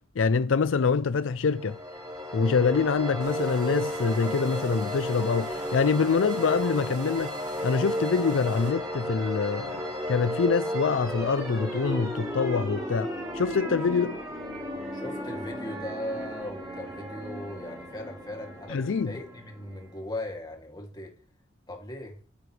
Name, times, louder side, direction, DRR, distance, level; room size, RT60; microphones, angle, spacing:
voice 1, 0.0-1.8 2.3-7.3 7.6-14.2 18.7-19.1, left 5 dB, 75° left, 0.5 m, -25 dB
sound 1, 1.4-20.1, equal, 20° right, 5.2 m, -34 dB
sound 2, 3.2-8.7, right 3 dB, 40° right, 2.8 m, -44 dB
voice 2, 14.9-21.2 21.7-22.2, left 1 dB, 20° left, 2.6 m, -38 dB
12.5 x 9.9 x 3.3 m
head